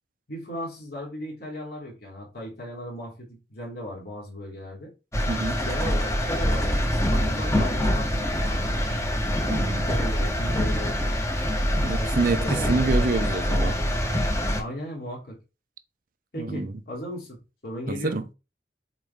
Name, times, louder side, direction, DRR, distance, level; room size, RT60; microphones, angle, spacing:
voice 1, 0.3-4.9 5.5-9.1 9.5-11.1 12.0-13.4 14.6-15.4 16.3-17.4 17.6-18.2, equal, 60° left, 2.9 m, -36 dB
sound 1, 5.1-14.6, equal, 15° left, 1.1 m, -25 dB
voice 2, 5.3-5.6 9.5-9.9 11.7-13.8 16.4-16.7 17.9-18.3, right 3 dB, 50° right, 0.6 m, -27 dB
7.2 x 4.1 x 3.5 m
head